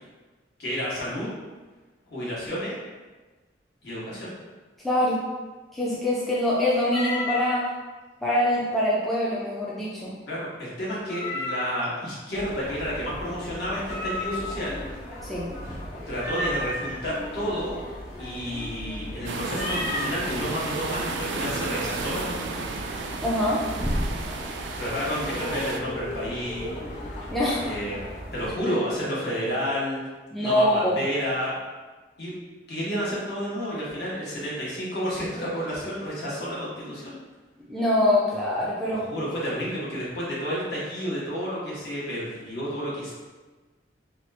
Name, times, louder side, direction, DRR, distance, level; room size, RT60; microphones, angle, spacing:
voice 1, 0.6-1.3 2.1-2.7 3.8-4.3 10.3-14.8 16.1-17.8 18.2-22.7 24.4-26.7 27.0-27.2 27.6-30.0 30.4-31.6 32.2-32.3 32.7-37.2 38.8-43.1, equal, 65° left, -8 dB, 1.1 m, -31 dB
voice 2, 4.8-5.2 5.7-7.7 8.2-10.2 15.2-15.5 23.2-23.6 27.3-27.7 28.7-28.8 30.3-31.0 37.7-39.0, left 1 dB, ahead, -7 dB, 0.3 m, -24 dB
Meow, 6.9-7.6 11.1-11.9 13.9-14.7 16.2-16.9 19.5-20.2, left 1 dB, 80° left, 0.8 m, -31 dB
sound 1, 12.3-28.5, equal, 45° left, 0.9 m, -37 dB
sound 2, 19.2-25.8, right 4 dB, 80° right, 0.3 m, -33 dB
2.9 x 2.3 x 3.2 m, 1.3 s
head